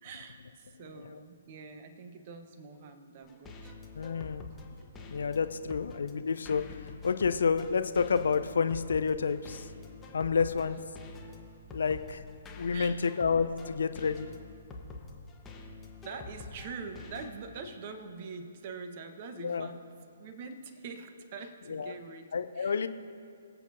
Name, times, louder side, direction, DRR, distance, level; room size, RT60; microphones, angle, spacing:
voice 1, 0.0-3.8 4.6-4.7 5.0-5.1 12.7-13.1 16.0-19.9 20.2-22.8, right 4 dB, 40° right, 7 dB, 1.1 m, -44 dB
sound 1, 3.2-17.3, left 3 dB, 15° left, 1.2 m, -47 dB
voice 2, 3.9-4.4 5.1-6.6 7.0-9.7 10.1-10.8 11.7-12.2 12.5-14.3 19.4-19.7 21.7-21.9 22.3-22.9, left 5 dB, 65° left, 10 dB, 0.5 m, -29 dB
24.5 x 8.3 x 2.7 m, 2.5 s
figure-of-eight pair, 130°, 0 cm